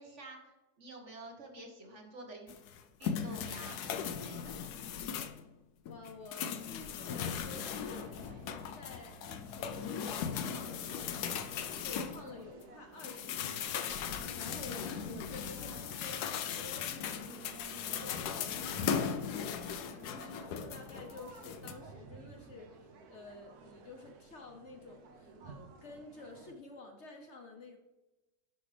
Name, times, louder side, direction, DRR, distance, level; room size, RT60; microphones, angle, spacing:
voice 1, 0.0-2.5 3.0-4.6, right 2 dB, 50° right, 1 dB, 1.7 m, -49 dB
sound 1, 2.5-5.5 5.9-12.6 13.0-21.7, left 7 dB, 85° left, 1.2 m, -38 dB
voice 2, 5.9-8.1 8.7-11.4 11.8-27.8, left 3 dB, 55° left, 3 dB, 1.0 m, -51 dB
sound 2, 7.0-26.5, right 5 dB, 75° right, 1.4 m, -54 dB
11.0 x 5.4 x 3.3 m, 1.0 s
omnidirectional pair, 1.6 m